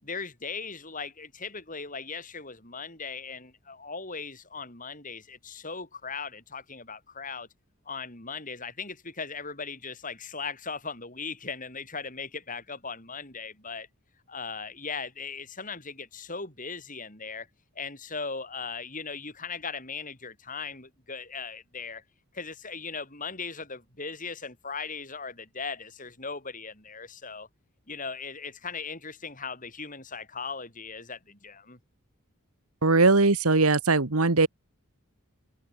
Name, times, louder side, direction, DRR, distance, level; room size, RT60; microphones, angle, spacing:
voice 1, 0.0-7.5 7.8-13.9 14.3-17.5 17.7-22.0 22.3-27.5 27.9-31.8, left 5 dB, 35° left, 8.0 m, -38 dB
voice 2, 32.8-34.5, right 3 dB, 80° right, 1.6 m, -20 dB
head